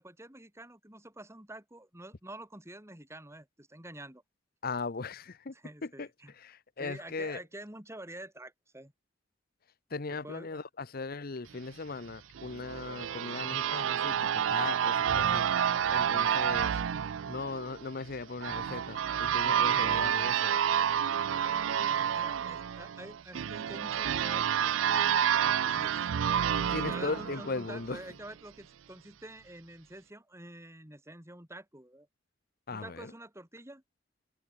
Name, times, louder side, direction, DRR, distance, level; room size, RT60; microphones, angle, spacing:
voice 1, 0.0-4.2 5.5-6.3 6.8-8.9 10.2-10.6 21.9-26.1 26.7-32.1 32.7-33.8, right 1 dB, 15° right, 4.1 m, -47 dB
voice 2, 4.6-5.5 5.8-6.1 6.4-7.4 9.9-15.4 15.9-16.8 17.3-20.5 26.6-28.0 32.7-33.1, left 3 dB, 50° left, 0.8 m, -38 dB
sound 1, 12.4-28.0, right 8 dB, 85° right, 0.4 m, -29 dB
open air
head